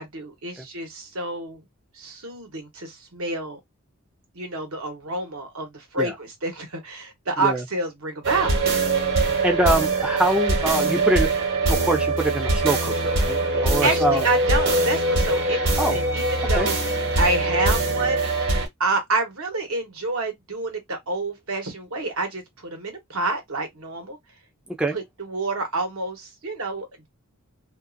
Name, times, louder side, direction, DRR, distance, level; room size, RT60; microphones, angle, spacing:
voice 1, 0.0-1.6 1.9-3.6 4.3-8.6 13.5-16.8 17.2-18.2 18.8-24.2 24.9-27.1, right 2 dB, 75° right, 1.1 m, -28 dB
sound 1, 8.2-18.7, right 2 dB, 55° right, 1.2 m, -22 dB
voice 2, 9.2-11.3 11.7-14.3 15.8-16.0 16.5-16.7 24.8-25.0, right 1 dB, 5° right, 0.4 m, -24 dB
2.6 x 2.4 x 2.5 m
head